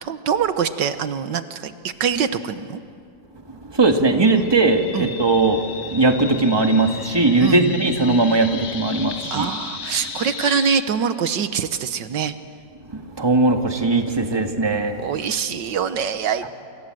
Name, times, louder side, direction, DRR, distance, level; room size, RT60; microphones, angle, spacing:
voice 1, 0.0-2.8 4.4-4.5 4.9-5.1 7.4-7.8 9.3-12.3 14.3-14.4 15.0-16.5, right 7 dB, 85° right, 11 dB, 1.8 m, -24 dB
voice 2, 3.7-5.6 5.9-9.5 12.9-15.0, right 2 dB, 15° right, 4 dB, 1.7 m, -19 dB
sound 1, 4.4-10.8, left 5 dB, 70° left, 2.1 m, -34 dB
28.5 x 26.5 x 7.8 m, 2.3 s
omnidirectional pair, 1.9 m